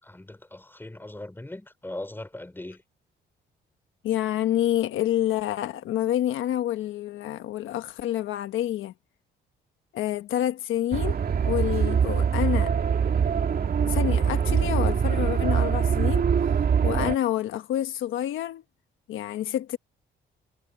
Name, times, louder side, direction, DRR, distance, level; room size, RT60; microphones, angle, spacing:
voice 1, 0.0-2.8, left 1 dB, 10° left, 5.8 m, -39 dB
voice 2, 4.0-8.9 9.9-11.2 11.4-12.7 13.8-16.3 16.8-18.6 19.1-19.8, left 12 dB, 80° left, 1.3 m, -28 dB
sound 1, 10.9-17.2, right 7 dB, 50° right, 2.5 m, -23 dB
cardioid pair, 90°, 20 cm